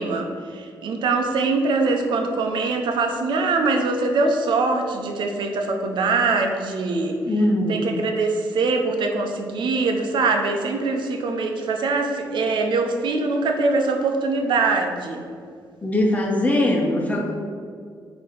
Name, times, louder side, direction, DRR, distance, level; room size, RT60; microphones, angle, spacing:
voice 1, 0.0-7.2 7.7-15.3, right 3 dB, 75° right, 4 dB, 0.8 m, -23 dB
voice 2, 7.3-7.9 15.8-17.3, left 1 dB, 20° left, 1 dB, 1.1 m, -21 dB
8.9 x 3.0 x 5.1 m, 2.2 s
cardioid pair, 125°, 8 cm